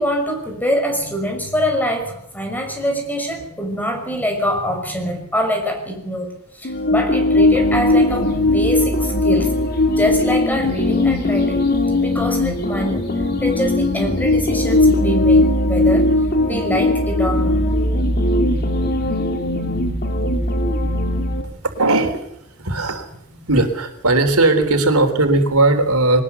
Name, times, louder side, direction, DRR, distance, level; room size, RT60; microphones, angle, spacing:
voice 1, 0.0-9.5 9.9-11.6 12.0-16.1 16.4-17.6, equal, 10° left, 3 dB, 6.0 m, -24 dB
sound 1, 6.6-21.4, left 2 dB, 45° left, 3.1 m, -18 dB
voice 2, 21.6-23.1 23.5-26.2, right 2 dB, 85° right, 6 dB, 3.5 m, -17 dB
22.0 x 19.5 x 7.0 m, 0.76 s
head